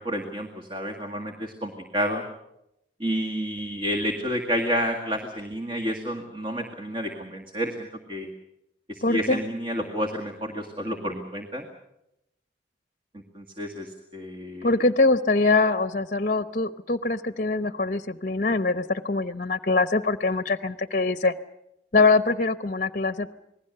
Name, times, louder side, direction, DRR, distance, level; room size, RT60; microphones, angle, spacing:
voice 1, 0.0-2.2 3.0-8.3 8.9-11.7 13.1-14.7, equal, 30° right, 4 dB, 2.0 m, -30 dB
voice 2, 9.0-9.4 14.6-21.3 21.9-23.3, left 3 dB, 45° left, 12 dB, 0.8 m, -23 dB
28.0 x 20.0 x 6.7 m, 0.84 s
head